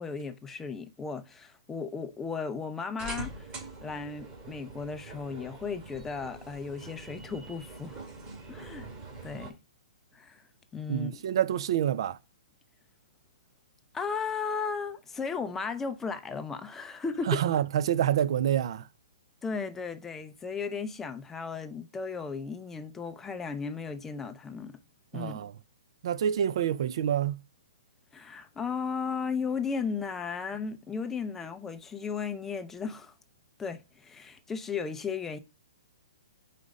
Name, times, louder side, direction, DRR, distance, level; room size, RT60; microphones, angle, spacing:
voice 1, 0.0-3.5 3.8-8.0 8.5-8.9 9.2-9.5 10.1-10.4 10.7-11.1 13.9-17.4 19.4-24.8 25.1-25.4 28.1-33.1 33.6-35.4, left 5 dB, 10° left, 0.5 m, -35 dB
sound 1, 3.0-9.5, right 2 dB, 25° right, 2.3 m, -44 dB
voice 2, 10.9-12.2 17.3-18.9 25.1-25.5 26.0-27.4, right 10 dB, 55° right, 0.4 m, -27 dB
4.9 x 4.2 x 5.1 m
hypercardioid pair, 150°, 3 cm